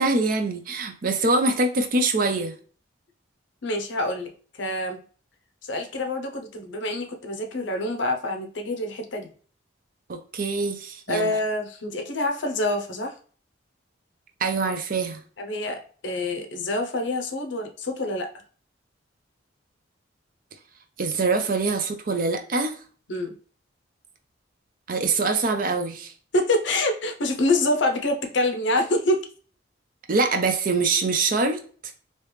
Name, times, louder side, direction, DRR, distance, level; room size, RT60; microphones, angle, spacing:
voice 1, 0.0-2.5 10.1-11.3 14.4-15.2 21.0-22.7 24.9-26.1 30.1-31.6, right 3 dB, 45° right, 6 dB, 0.5 m, -24 dB
voice 2, 3.6-4.3 4.6-5.0 5.6-9.3 11.1-13.1 15.4-18.3 23.1-23.3 26.3-29.3, left 1 dB, 65° left, 5 dB, 0.6 m, -26 dB
3.2 x 2.9 x 3.2 m, 0.42 s
head